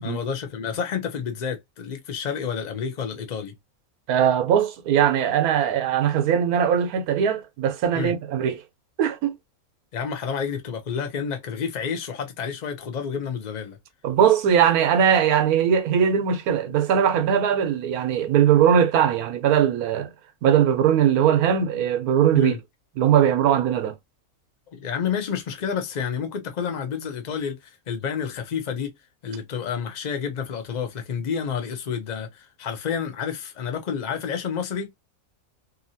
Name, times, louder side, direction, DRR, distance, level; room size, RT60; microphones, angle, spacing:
voice 1, 0.0-3.5 7.9-8.1 9.9-13.8 22.3-22.6 24.7-28.9 29.2-34.9, left 7 dB, 45° left, 0.6 m, -29 dB
voice 2, 4.1-8.6 9.0-9.3 14.0-20.1 20.4-22.6 23.0-23.9, right 9 dB, 90° right, 1.2 m, -20 dB
2.8 x 2.7 x 2.6 m
omnidirectional pair, 1.5 m